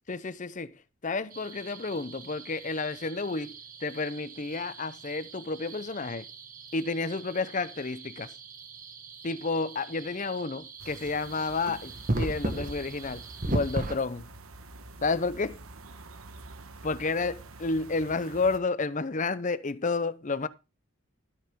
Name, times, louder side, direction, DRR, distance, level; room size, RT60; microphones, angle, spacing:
voice 1, 0.1-3.5 3.8-6.3 6.7-8.3 9.2-14.3 15.0-15.6 16.8-20.5, left 3 dB, 35° left, 0.7 m, -31 dB
sound 1, 1.3-13.9, right 2 dB, 40° right, 1.7 m, -38 dB
sound 2, 10.8-18.6, right 3 dB, 85° right, 1.2 m, -47 dB
13.0 x 9.4 x 3.7 m
head